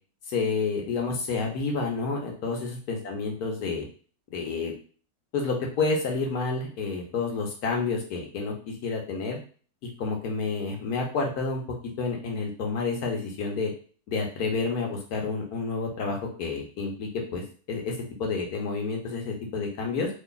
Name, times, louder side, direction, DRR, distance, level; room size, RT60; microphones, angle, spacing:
voice 1, 0.3-2.6 2.9-3.9 4.3-4.7 5.3-9.4 10.0-11.6 12.0-13.7 14.1-17.4 17.7-17.9 18.2-20.1, left 4 dB, 85° left, 0 dB, 1.5 m, -29 dB
3.2 x 2.2 x 3.8 m, 0.40 s
omnidirectional pair, 1.6 m